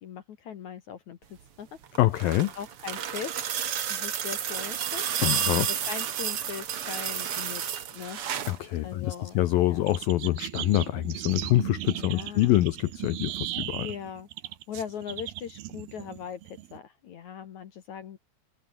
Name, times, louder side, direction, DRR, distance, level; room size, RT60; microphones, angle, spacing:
voice 1, 0.0-1.2 1.6-1.7 2.5-3.5 3.9-5.1 5.6-7.6 7.9-8.5 8.8-9.9 12.0-12.6 13.8-18.2, left 8 dB, 65° left, 1.9 m, -40 dB
sound 1, 1.8-8.6 9.9-10.0, right 9 dB, 90° right, 1.2 m, -31 dB
voice 2, 2.0-2.5 5.2-5.7 8.5-13.9, left 16 dB, 90° left, 2.0 m, -25 dB
sound 2, 9.9-16.8, right 15 dB, 70° right, 2.7 m, -37 dB
open air
omnidirectional pair, 5.4 m